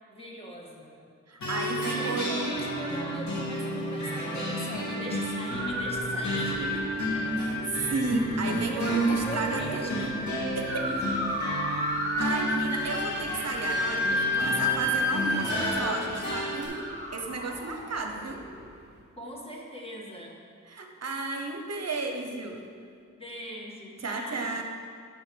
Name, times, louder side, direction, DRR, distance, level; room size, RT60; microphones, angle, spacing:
voice 1, 0.1-1.0 2.0-6.9 8.7-10.3 10.9-11.1 14.5-14.6 19.1-20.4 23.2-24.6, equal, 20° left, -2 dB, 1.6 m, -40 dB
voice 2, 1.3-2.5 7.4-10.1 10.5-10.8 12.2-18.4 20.7-22.6 24.0-24.6, right 3 dB, 60° right, 3 dB, 0.9 m, -33 dB
sound 1, 1.4-16.6, equal, 70° left, 2.3 m, -32 dB
sound 2, 5.5-18.5, left 1 dB, 35° right, 2.3 m, -32 dB
8.9 x 5.8 x 6.3 m, 2.2 s
wide cardioid pair, 110°, 30 cm